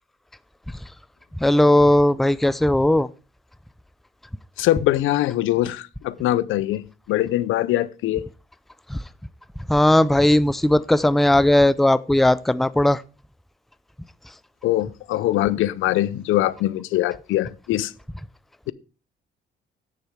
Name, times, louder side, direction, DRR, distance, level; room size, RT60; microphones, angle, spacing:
voice 1, 1.4-3.1 8.9-9.0 9.7-13.0, left 1 dB, ahead, 0.4 m, -17 dB
voice 2, 4.6-8.2 14.6-17.9, left 14 dB, 90° left, 0.6 m, -22 dB
10.5 x 6.7 x 4.7 m
cardioid pair, 90°, 20 cm